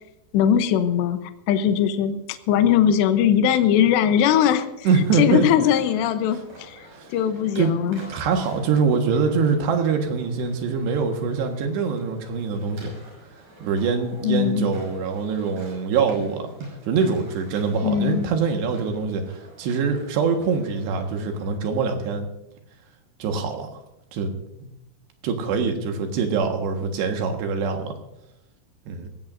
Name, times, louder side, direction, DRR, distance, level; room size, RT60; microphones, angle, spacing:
voice 1, 0.3-1.2 1.5-4.9 5.1-6.8 7.1-8.0 14.2-14.7 17.8-18.3, left 9 dB, 75° left, 9 dB, 2.7 m, -20 dB
voice 2, 4.8-5.5 6.9-7.1 7.6-12.9 13.6-22.3 23.2-23.7 24.1-24.3 24.6-24.7 25.2-28.0 28.9-29.1, right 5 dB, 65° right, 4 dB, 3.3 m, -24 dB
sound 1, 5.6-22.1, right 1 dB, 40° right, 7.4 m, -48 dB
20.0 x 16.0 x 2.6 m, 0.86 s
omnidirectional pair, 5.8 m